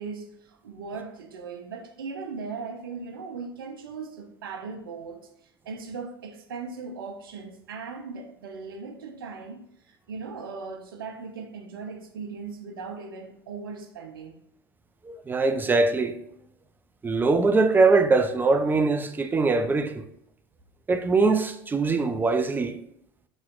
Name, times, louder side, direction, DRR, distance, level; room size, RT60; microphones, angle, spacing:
voice 1, 0.0-5.2 5.6-9.6 9.9-14.4, right 4 dB, 75° right, 0.6 m, -38 dB
voice 2, 15.0-16.2 17.0-20.0 20.9-22.8, right 3 dB, 15° right, 0.4 m, -22 dB
7.1 x 3.0 x 2.4 m
figure-of-eight pair, 75°, 12 cm